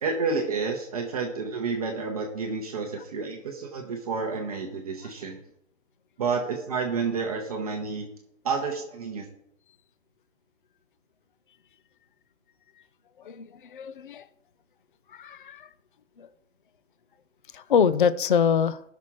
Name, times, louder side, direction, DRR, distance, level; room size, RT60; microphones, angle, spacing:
voice 1, 0.0-5.4 6.2-8.1 8.4-9.2, right 4 dB, 30° right, 1 dB, 0.9 m, -30 dB
voice 2, 13.2-14.3 15.1-15.7 16.2-16.3 17.5-18.8, left 7 dB, 45° left, 15 dB, 0.4 m, -25 dB
16.5 x 6.1 x 3.1 m, 0.76 s
hypercardioid pair, 160°, 38 cm